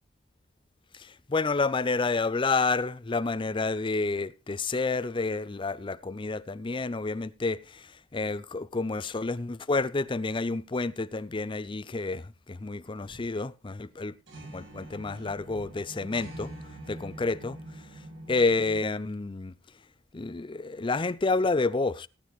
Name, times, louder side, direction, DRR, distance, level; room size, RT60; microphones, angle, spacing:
voice 1, 0.9-14.1 14.5-16.5 16.9-17.6 18.3-19.5 20.1-22.1, left 3 dB, 25° left, 0.5 m, -29 dB
sound 1, 12.9-13.4 13.8-13.9 14.3-18.8, right 1 dB, 85° right, 7.3 m, -45 dB
18.5 x 8.5 x 3.1 m
head